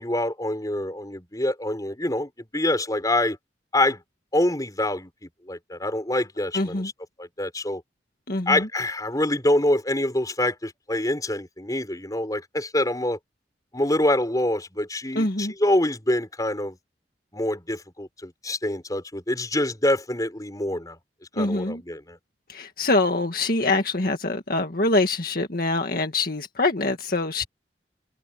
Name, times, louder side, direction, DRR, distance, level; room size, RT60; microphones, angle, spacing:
voice 1, 0.0-3.4 3.7-4.0 4.3-6.8 7.2-7.8 8.5-13.2 13.7-16.8 17.3-21.0 21.3-22.2, left 1 dB, 20° left, 5.2 m, -25 dB
voice 2, 6.5-6.9 8.3-8.7 15.1-15.5 21.4-21.8 22.5-27.4, left 2 dB, 55° left, 1.9 m, -24 dB
head